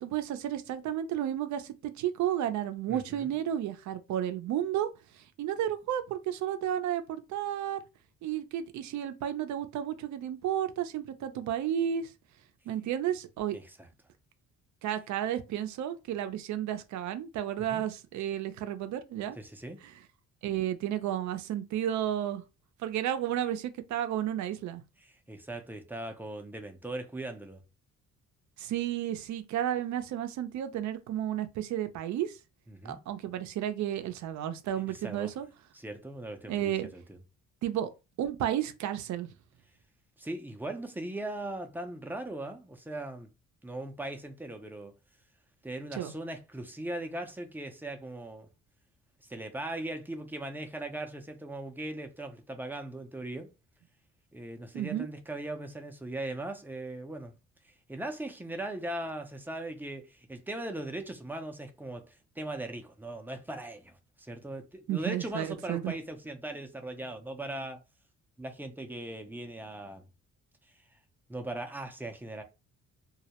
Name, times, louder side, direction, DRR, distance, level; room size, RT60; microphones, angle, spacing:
voice 1, 0.0-4.9 5.4-7.8 8.2-12.1 12.7-13.6 14.8-19.4 20.4-22.4 22.8-24.8 28.6-32.4 32.8-35.5 36.5-36.9 37.6-37.9 38.2-39.3 46.0-46.1 54.7-55.1 64.9-65.9, right 11 dB, 70° right, 0.5 m, -32 dB
voice 2, 2.9-3.3 13.5-13.9 17.6-17.8 19.4-19.8 25.0-27.6 32.7-33.0 34.9-35.3 35.7-37.2 40.2-43.3 43.6-44.9 45.6-48.5 49.2-53.5 54.3-57.3 57.6-67.8 68.4-70.1 71.3-72.4, right 1 dB, 5° right, 0.4 m, -39 dB
2.3 x 2.0 x 2.8 m
cardioid pair, 90°, 30 cm